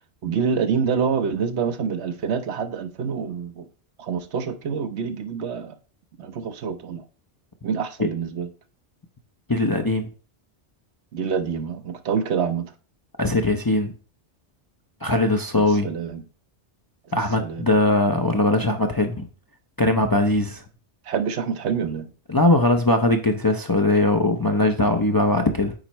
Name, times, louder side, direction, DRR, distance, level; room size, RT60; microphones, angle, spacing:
voice 1, 0.2-3.7 4.0-5.8 6.2-7.0 7.6-8.5 11.1-12.7 15.5-16.2 17.4-17.7 21.1-22.1, right 6 dB, 75° right, 1.0 m, -26 dB
voice 2, 9.5-10.1 13.2-13.9 15.0-15.9 17.1-19.3 19.8-20.6 22.3-25.7, left 2 dB, 25° left, 0.5 m, -20 dB
8.8 x 4.4 x 3.0 m
omnidirectional pair, 1.1 m